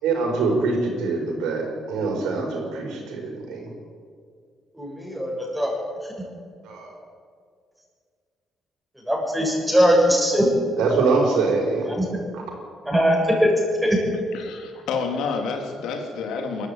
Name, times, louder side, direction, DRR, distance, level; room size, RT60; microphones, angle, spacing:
voice 1, 0.0-3.7 6.6-6.9 10.8-11.8 12.3-12.4, right 4 dB, 90° right, 1 dB, 5.7 m, -24 dB
voice 2, 4.7-5.7 9.1-10.5 11.9-12.0 12.9-13.5 13.8-14.0, equal, 5° right, -2 dB, 7.0 m, -20 dB
voice 3, 14.3-16.7, left 5 dB, 85° left, 4 dB, 3.3 m, -29 dB
22.5 x 13.5 x 9.0 m, 2.1 s
cardioid pair, 90°, 0 cm